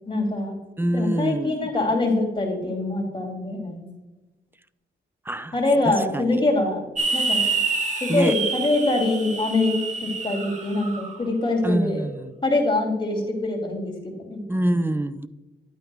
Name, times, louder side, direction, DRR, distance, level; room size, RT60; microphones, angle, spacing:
voice 1, 0.1-0.6 0.9-3.9 5.5-6.8 7.1-7.6 8.0-12.1 12.4-14.4, left 2 dB, 25° left, 0 dB, 2.8 m, -24 dB
voice 2, 0.8-1.7 5.3-5.5 5.9-6.4 8.1-8.4 11.6-12.3 14.5-15.3, right 1 dB, 10° right, 14 dB, 0.4 m, -25 dB
sound 1, 7.0-11.1, right 4 dB, 40° right, 1.4 m, -27 dB
11.0 x 8.9 x 2.3 m, 1.2 s
wide cardioid pair, 115°, 19 cm